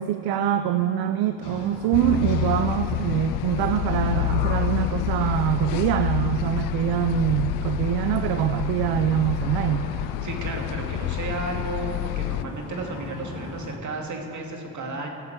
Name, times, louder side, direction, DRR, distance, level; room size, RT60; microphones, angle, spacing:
voice 1, 0.0-9.9, right 11 dB, 70° right, 9 dB, 0.7 m, -24 dB
sound 1, 1.4-13.8, left 4 dB, 80° left, 2.4 m, -39 dB
sound 2, 1.9-12.4, left 16 dB, 60° left, 0.5 m, -28 dB
voice 2, 10.2-15.1, right 2 dB, 45° right, 1 dB, 2.7 m, -33 dB
16.5 x 7.3 x 8.0 m, 2.5 s
supercardioid pair, 80°, 39 cm